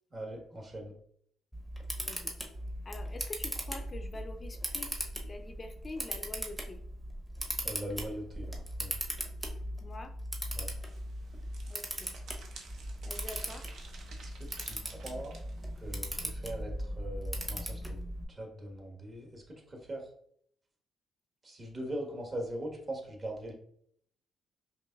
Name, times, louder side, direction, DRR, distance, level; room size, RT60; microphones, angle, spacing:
voice 1, 0.1-0.9 7.6-8.9 10.5-10.7 14.2-15.3 15.8-18.0 18.3-20.1 21.4-23.5, right 1 dB, 35° right, 1 dB, 1.3 m, -41 dB
Camera, 1.5-18.2, equal, 10° right, 0.8 m, -39 dB
voice 2, 2.8-6.8 9.8-10.1 11.7-12.1 13.1-13.7, left 2 dB, 30° left, 5 dB, 0.4 m, -45 dB
sound 1, 10.4-16.3, right 3 dB, 70° right, 0.8 m, -51 dB
5.1 x 2.9 x 2.3 m, 0.67 s
cardioid pair, 90°, 0 cm